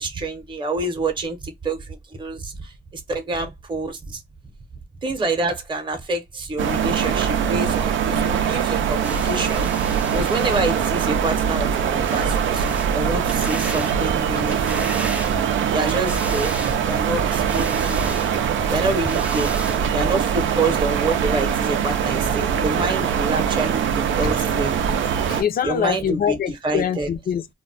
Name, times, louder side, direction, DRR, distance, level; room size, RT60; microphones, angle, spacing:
voice 1, 0.0-4.2 5.0-14.8 15.7-18.1 18.7-19.6 19.9-24.7 25.6-26.3 26.6-27.1, right 2 dB, 25° right, 0.7 m, -27 dB
sound 1, 6.6-25.4, right 8 dB, 80° right, 0.5 m, -22 dB
sound 2, 9.0-11.0 12.1-12.9 13.3-14.0 14.3-15.6 15.9-16.8 17.3-18.3 18.9-19.8 20.5-20.6, right 1 dB, 5° right, 0.4 m, -35 dB
voice 2, 24.8-27.5, left 8 dB, 50° left, 0.5 m, -25 dB
2.2 x 2.1 x 3.8 m
cardioid pair, 105°, 20 cm